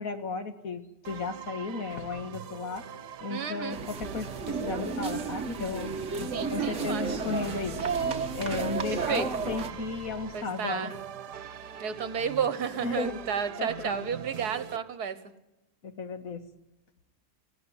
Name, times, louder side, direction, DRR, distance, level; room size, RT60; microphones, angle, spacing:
voice 1, 0.0-2.8 3.2-11.0 12.8-13.2 13.6-14.1 15.8-16.4, left 4 dB, 55° left, 8 dB, 2.1 m, -35 dB
sound 1, 1.0-14.8, right 8 dB, 85° right, 1.6 m, -43 dB
voice 2, 3.3-3.8 6.3-7.1 9.1-9.3 10.3-10.9 11.8-15.2, right 7 dB, 70° right, 13 dB, 1.9 m, -32 dB
sound 2, 3.7-9.7, right 5 dB, 50° right, 1.7 m, -32 dB
sound 3, 4.0-10.3, left 2 dB, 20° left, 7.0 m, -48 dB
17.5 x 16.0 x 9.8 m, 0.94 s
omnidirectional pair, 1.7 m